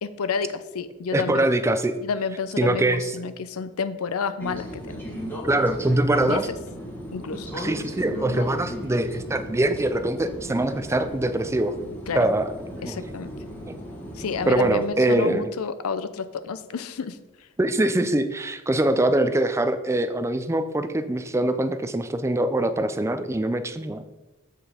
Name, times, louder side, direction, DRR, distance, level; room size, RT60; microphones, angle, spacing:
voice 1, 0.0-1.4 2.0-5.0 6.2-6.4 7.1-7.5 12.1-12.3 12.8-13.3 14.2-17.2, left 5 dB, 75° left, 12 dB, 0.5 m, -30 dB
voice 2, 1.1-2.0 2.6-3.0 5.4-6.5 7.5-11.7 12.2-13.0 14.5-15.5 17.6-24.2, right 1 dB, 15° right, 10 dB, 0.4 m, -23 dB
sound 1, 4.4-14.9, equal, 10° left, 1.3 m, -36 dB
7.7 x 4.7 x 4.9 m, 1.1 s
head